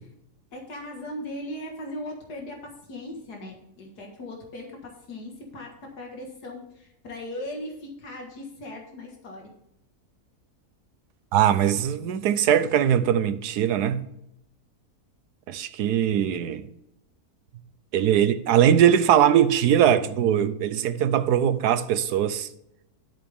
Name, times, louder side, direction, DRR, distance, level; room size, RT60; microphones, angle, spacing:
voice 1, 0.5-9.5, left 1 dB, 85° left, 2.3 m, -38 dB
voice 2, 11.3-14.1 15.5-16.7 17.9-22.5, right 9 dB, 85° right, 1.3 m, -21 dB
12.0 x 7.8 x 3.5 m
omnidirectional pair, 1.7 m